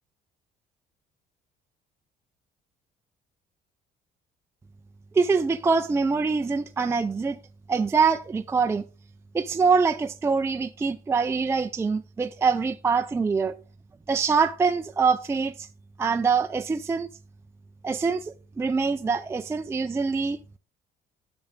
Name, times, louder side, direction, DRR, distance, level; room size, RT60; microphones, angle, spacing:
voice 1, 5.1-7.4 7.7-8.8 9.3-13.5 14.1-15.7 16.0-17.1 17.8-20.4, right 5 dB, 15° right, 0.4 m, -24 dB
7.1 x 6.1 x 3.8 m
cardioid pair, 110°, 17 cm